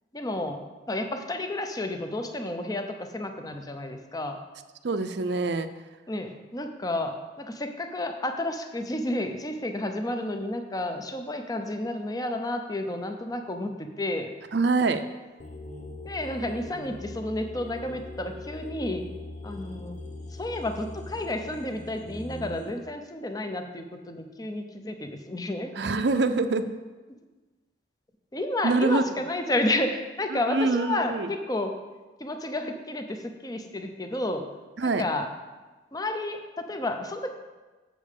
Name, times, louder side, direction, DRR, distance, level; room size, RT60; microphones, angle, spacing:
voice 1, 0.1-0.6 0.9-4.4 6.1-14.3 16.0-19.1 19.4-20.0 20.4-25.7 28.3-31.8 32.2-34.4 34.8-35.3 35.9-37.3, left 1 dB, 20° left, 6 dB, 0.6 m, -31 dB
voice 2, 4.8-5.7 14.5-15.0 25.8-26.7 28.6-29.0 30.3-31.3 34.8-35.0, right 3 dB, 70° right, 10 dB, 0.5 m, -25 dB
sound 1, 15.4-22.7, left 2 dB, 40° left, 0.9 m, -41 dB
7.3 x 5.3 x 6.6 m, 1.2 s
head